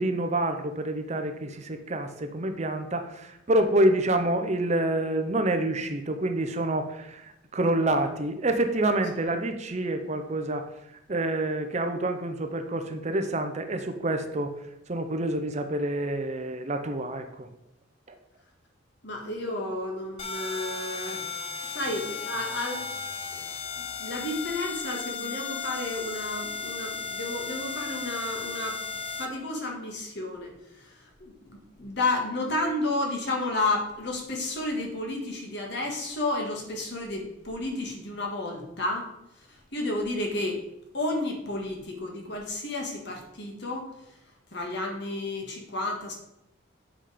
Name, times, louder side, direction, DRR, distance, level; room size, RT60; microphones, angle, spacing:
voice 1, 0.0-10.6 11.1-14.5 14.9-17.5, right 1 dB, 35° right, 7 dB, 0.7 m, -27 dB
voice 2, 19.0-21.3 21.7-23.1 23.3-23.4 23.7-30.5 30.8-39.1 39.5-40.6 40.9-43.9 44.5-46.1, left 2 dB, 60° left, 1 dB, 1.7 m, -32 dB
sound 1, 20.2-29.3, left 4 dB, 30° left, 0.6 m, -35 dB
7.7 x 5.1 x 5.0 m, 0.86 s
head